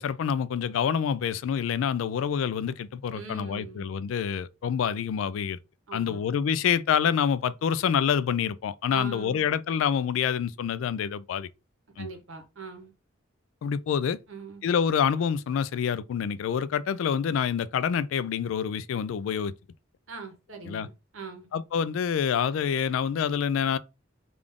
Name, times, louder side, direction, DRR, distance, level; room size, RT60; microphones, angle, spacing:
voice 1, 0.0-5.6 5.9-11.5 12.0-12.1 13.6-14.2 14.6-19.5 20.7-20.9 21.5-23.8, left 7 dB, 70° left, 0.3 m, -27 dB
voice 2, 3.1-3.9 5.9-6.2 8.9-9.5 12.0-12.9 14.3-14.6 20.1-21.5, right 4 dB, 90° right, 1.0 m, -42 dB
3.6 x 2.4 x 3.4 m
head